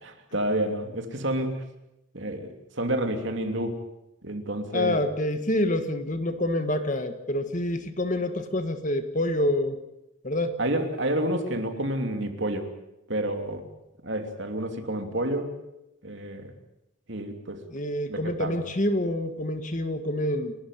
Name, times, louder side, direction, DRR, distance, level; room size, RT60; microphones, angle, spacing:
voice 1, 0.0-1.6 2.1-3.8 4.2-5.0 10.6-12.7 13.1-13.6 14.0-15.5 16.0-16.5 17.1-17.6 18.1-18.6, right 1 dB, 55° right, 5 dB, 2.9 m, -29 dB
voice 2, 4.7-9.8 10.2-10.6 17.7-20.5, left 1 dB, 35° left, 9 dB, 1.7 m, -27 dB
29.0 x 12.5 x 9.5 m, 0.89 s
head